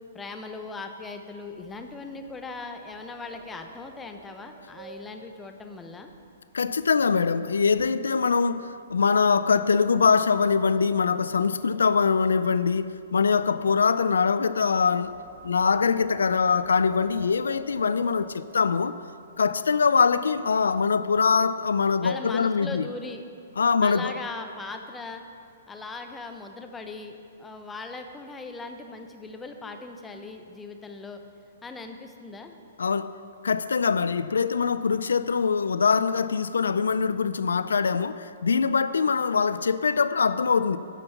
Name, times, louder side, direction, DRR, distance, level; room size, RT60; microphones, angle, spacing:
voice 1, 0.1-6.1 22.0-23.2 23.8-25.2 25.7-31.2 31.6-32.6, left 3 dB, 10° left, 0.8 m, -39 dB
sound 1, 1.4-6.8 7.1-7.4 7.9-8.1 8.9-12.2 12.5-18.7 19.3-19.4 19.7-20.0 20.3-21.0, right 1 dB, 45° right, 2.3 m, -50 dB
voice 2, 6.5-15.2 15.4-19.0 19.4-22.9 23.6-24.1 32.8-33.2 33.4-40.8, left 5 dB, 80° left, 0.4 m, -23 dB
11.5 x 5.3 x 7.1 m
hypercardioid pair, 130°, 0 cm